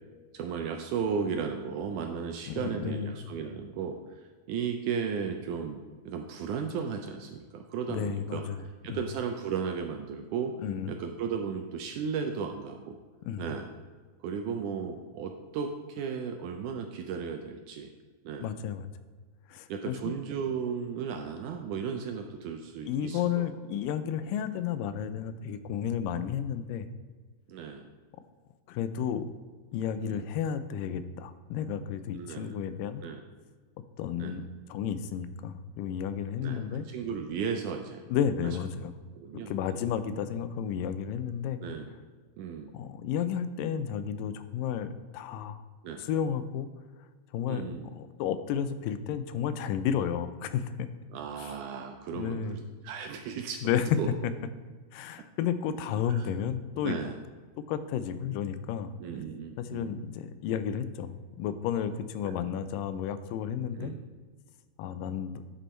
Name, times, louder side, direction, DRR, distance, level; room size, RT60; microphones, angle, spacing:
voice 1, 0.3-4.0 4.5-10.5 10.9-13.0 13.4-13.7 14.2-17.9 18.3-18.5 19.7-23.5 27.5-27.9 30.0-30.3 32.1-32.6 33.0-33.2 34.2-34.3 36.4-38.0 39.2-39.8 41.6-41.9 42.4-42.7 45.8-46.0 47.5-47.9 51.1-53.6 54.0-54.1 56.1-56.3 56.8-57.2 59.0-60.0 62.2-62.3 63.7-64.0, right 6 dB, 80° right, 4 dB, 1.9 m, -35 dB
voice 2, 2.5-3.1 7.9-8.6 8.9-9.0 10.6-10.9 13.2-13.5 18.4-18.9 19.5-20.1 22.9-26.9 28.7-29.3 29.7-33.0 34.0-34.4 34.7-36.9 38.1-38.9 39.5-41.6 42.7-45.6 46.0-46.7 47.3-50.7 51.4-51.5 52.1-52.6 53.6-53.9 54.9-57.0 57.7-58.9 59.6-63.9 64.8-65.4, left 8 dB, 85° left, 12 dB, 2.2 m, -32 dB
9.9 x 5.5 x 4.3 m, 1.4 s
omnidirectional pair, 3.9 m